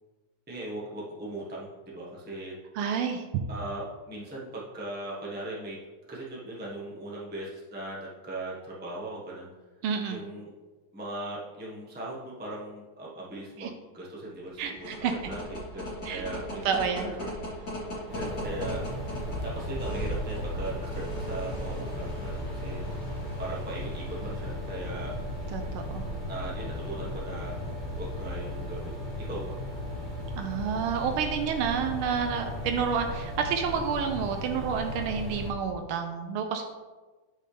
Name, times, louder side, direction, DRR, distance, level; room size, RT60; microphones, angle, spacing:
voice 1, 0.5-2.5 3.5-5.8 6.1-9.5 10.1-10.5 10.9-15.0 15.2-17.2 18.1-18.8 19.4-23.0 23.4-25.1 26.3-27.6 28.0-28.9 29.2-29.5, right 1 dB, 5° right, -6 dB, 1.0 m, -39 dB
voice 2, 2.7-3.3 9.8-10.2 13.6-13.7 14.6-15.1 16.0-16.2 16.6-17.1 25.5-26.0 30.4-36.6, right 6 dB, 85° right, 5 dB, 1.5 m, -29 dB
sound 1, 14.5-25.2, equal, 55° left, 2.9 m, -38 dB
sound 2, 18.1-35.5, left 1 dB, 80° left, 2.9 m, -36 dB
8.6 x 5.6 x 3.3 m, 1.3 s
omnidirectional pair, 2.3 m